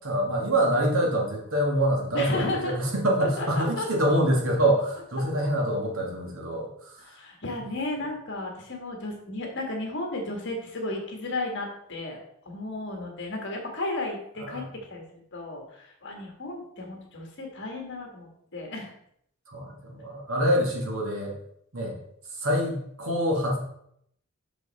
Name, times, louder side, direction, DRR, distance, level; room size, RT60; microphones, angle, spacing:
voice 1, 0.0-6.9 14.4-14.7 19.5-21.4 21.7-22.0 22.4-23.6, right 1 dB, 70° right, -1 dB, 1.9 m, -25 dB
voice 2, 2.1-2.8 3.4-3.9 7.0-12.2 12.4-15.0 15.3-18.9, left 2 dB, 55° left, 1 dB, 1.7 m, -34 dB
6.1 x 5.5 x 4.1 m, 0.70 s
head